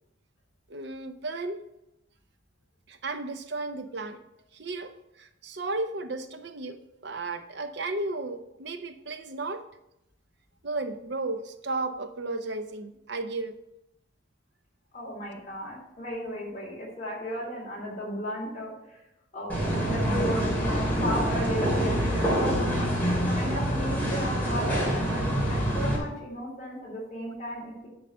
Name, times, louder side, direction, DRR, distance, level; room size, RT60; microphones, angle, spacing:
voice 1, 0.7-1.6 2.9-4.2 4.5-9.6 10.6-13.6, right 2 dB, 55° right, 9 dB, 0.7 m, -34 dB
voice 2, 14.9-19.0 19.3-27.9, equal, 35° left, -4 dB, 3.2 m, -35 dB
sound 1, 19.5-26.0, equal, 10° left, 2.6 m, -26 dB
10.0 x 4.0 x 6.8 m, 0.85 s
head